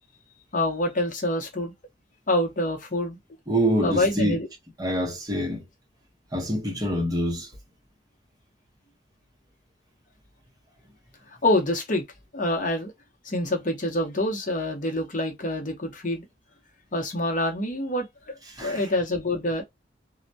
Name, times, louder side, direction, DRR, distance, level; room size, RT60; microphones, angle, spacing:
voice 1, 0.5-1.7 2.3-3.2 3.8-4.5 11.4-12.0 12.3-12.9 13.2-16.3 16.9-19.6, left 1 dB, 45° left, 0.8 m, -26 dB
voice 2, 3.5-4.4 4.8-5.7 6.3-7.5 18.5-18.8, equal, 20° right, 0.8 m, -26 dB
2.2 x 2.1 x 2.6 m
head